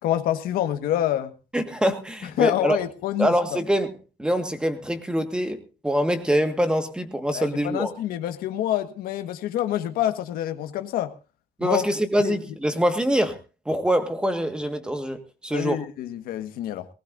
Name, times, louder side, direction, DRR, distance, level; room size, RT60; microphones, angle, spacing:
voice 1, 0.0-1.3 2.4-3.6 7.3-11.1 11.6-11.8 12.2-12.4 15.5-16.9, left 12 dB, 75° left, 1.6 m, -27 dB
voice 2, 1.5-2.8 3.2-3.9 4.2-7.9 11.6-15.8, equal, 5° right, 1.7 m, -24 dB
19.5 x 18.5 x 2.6 m
cardioid pair, 150°, 15 cm